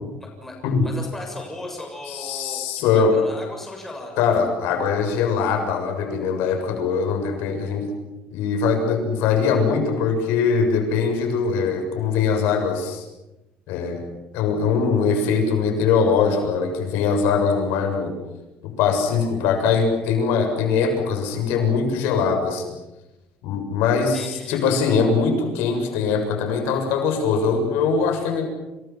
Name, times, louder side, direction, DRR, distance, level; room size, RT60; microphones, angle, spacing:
voice 1, 0.2-0.6 0.8-4.2 24.1-24.6, left 2 dB, 5° left, 1 dB, 7.2 m, -36 dB
voice 2, 2.1-3.2 4.2-7.9 8.3-13.0 13.7-14.0 14.3-18.1 18.6-22.7 23.4-28.4, left 5 dB, 90° left, 5 dB, 7.2 m, -22 dB
29.5 x 29.0 x 6.0 m, 1.0 s
cardioid pair, 170°, 4 cm